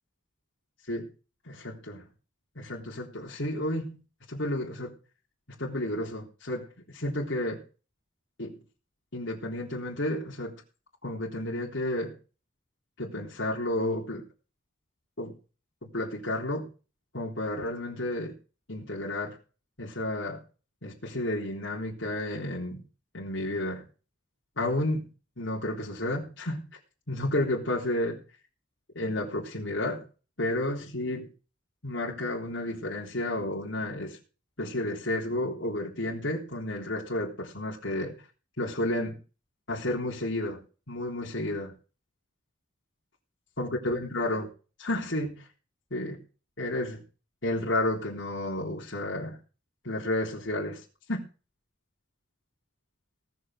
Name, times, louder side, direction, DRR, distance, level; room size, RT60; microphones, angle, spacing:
voice 1, 1.5-2.0 2.6-4.0 4.3-4.9 5.6-7.6 8.4-8.6 9.1-10.6 11.0-12.2 13.0-14.2 15.2-15.3 15.8-16.7 17.1-18.3 18.7-19.4 19.8-20.4 20.8-22.8 23.1-23.8 24.6-25.1 25.4-26.7 27.1-28.2 28.9-30.0 30.4-31.3 31.8-34.2 34.6-38.2 38.6-39.2 39.7-40.6 40.9-41.7 43.6-44.5 44.8-45.5 45.9-46.2 46.6-47.0 47.4-49.4 49.8-51.2, left 1 dB, 65° left, -4 dB, 3.7 m, -31 dB
18.5 x 6.6 x 6.4 m, 0.35 s
head